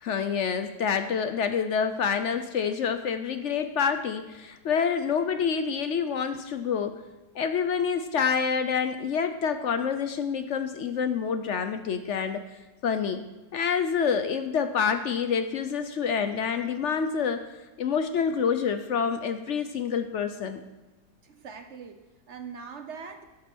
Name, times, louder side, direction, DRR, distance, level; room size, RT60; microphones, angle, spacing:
voice 1, 0.0-7.0 7.3-12.5 12.8-13.2 13.5-17.4 17.8-20.6, left 6 dB, 65° left, 9 dB, 0.7 m, -27 dB
voice 2, 21.2-23.2, right 6 dB, 55° right, 7 dB, 0.9 m, -42 dB
11.5 x 7.1 x 6.1 m, 1.1 s
omnidirectional pair, 1.9 m